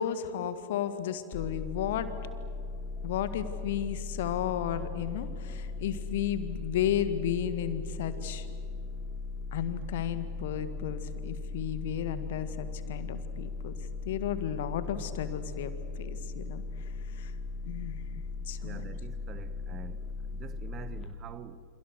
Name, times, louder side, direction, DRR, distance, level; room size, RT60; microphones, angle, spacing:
voice 1, 0.0-2.1 3.0-8.5 9.5-13.7 14.1-15.7 16.0-17.3 17.6-18.0 18.5-18.9, left 9 dB, 55° left, 1.9 m, -33 dB
sound 1, 1.3-21.1, left 4 dB, 25° left, 2.9 m, -38 dB
voice 2, 18.6-21.6, right 8 dB, 30° right, 1.1 m, -46 dB
29.0 x 27.5 x 6.4 m
figure-of-eight pair, 90°, 0 cm